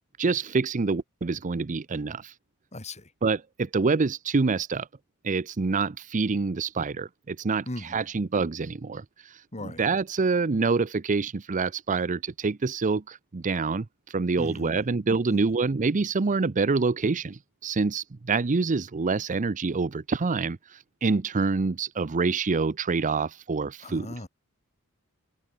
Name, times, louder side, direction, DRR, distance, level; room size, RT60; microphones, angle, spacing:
voice 1, 0.2-2.3 3.2-4.9 5.2-24.1, right 4 dB, 35° right, 0.6 m, -26 dB
voice 2, 2.7-3.1 7.7-8.1 9.5-9.8 14.4-14.8 15.3-15.4 23.8-24.3, left 1 dB, 30° left, 3.8 m, -38 dB
open air
head